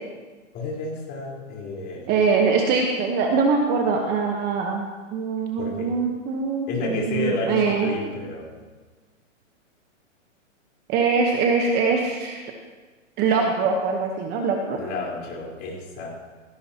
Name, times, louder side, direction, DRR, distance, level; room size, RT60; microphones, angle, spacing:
voice 1, 0.5-2.1 5.6-5.9 6.7-8.5 14.7-16.1, left 3 dB, 25° left, -3 dB, 4.3 m, -31 dB
voice 2, 2.1-4.8 5.1-7.9 10.9-12.5 13.2-14.8, right 5 dB, 25° right, 2 dB, 1.2 m, -23 dB
17.0 x 16.5 x 3.0 m, 1.3 s
hypercardioid pair, 140°, 38 cm